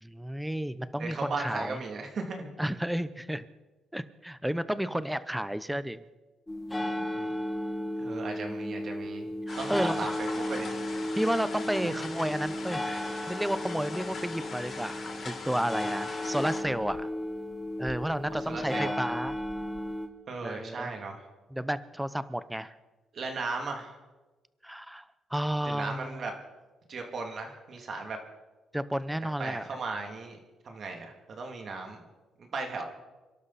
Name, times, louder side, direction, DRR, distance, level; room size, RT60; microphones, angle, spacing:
voice 1, 0.0-1.8 2.6-3.5 3.9-6.0 6.8-7.1 9.5-10.0 11.2-17.1 17.8-19.3 20.4-20.9 21.5-22.7 24.6-26.3 28.7-29.6, equal, 5° right, 14 dB, 0.8 m, -32 dB
voice 2, 1.0-2.5 7.1-7.3 8.0-9.3 9.6-10.8 18.3-19.0 20.3-21.3 23.1-24.0 25.6-26.3 26.9-28.2 29.4-30.4 30.6-32.0 32.4-32.8, right 3 dB, 55° right, 2 dB, 2.8 m, -36 dB
sound 1, 6.5-20.1, left 1 dB, 15° left, 2.2 m, -34 dB
sound 2, 9.5-16.6, left 3 dB, 50° left, 4.7 m, -41 dB
27.5 x 12.0 x 4.2 m, 1.2 s
cardioid pair, 90°, 0 cm